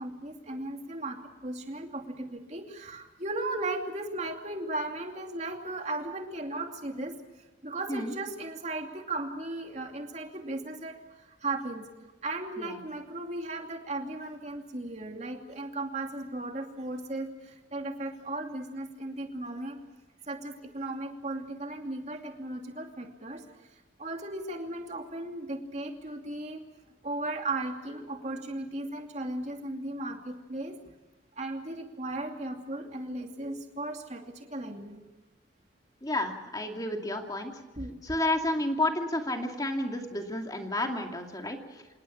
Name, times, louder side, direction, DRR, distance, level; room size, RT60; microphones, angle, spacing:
voice 1, 0.0-7.2 7.6-11.0 11.4-11.8 12.2-19.8 20.3-23.4 24.0-26.6 27.0-30.8 31.4-34.2 34.5-35.0 37.8-38.0, right 2 dB, 35° right, 3 dB, 2.7 m, -36 dB
voice 2, 36.0-37.5 38.0-41.6, left 1 dB, 20° left, 3 dB, 2.6 m, -31 dB
27.5 x 19.0 x 7.4 m, 1.1 s
head